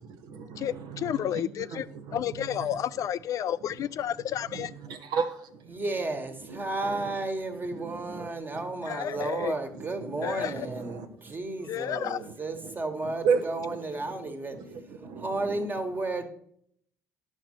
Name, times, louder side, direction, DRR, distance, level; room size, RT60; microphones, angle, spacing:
voice 1, 0.0-1.4 1.7-2.5 4.5-5.8 6.8-7.0 7.7-8.6 9.1-9.3 10.0-11.3 12.2-12.3 12.6-12.7 13.2-13.8 14.0-14.1 14.5-15.6, right 6 dB, 55° right, 8 dB, 0.9 m, -34 dB
voice 2, 0.6-1.9 2.1-4.7 8.9-9.5 10.2-10.7 11.7-12.2, left 10 dB, 45° left, 16 dB, 0.3 m, -31 dB
voice 3, 5.7-14.6 15.2-16.2, right 2 dB, 25° right, 7 dB, 1.6 m, -33 dB
11.5 x 6.3 x 4.4 m, 0.67 s
figure-of-eight pair, 50°, 8 cm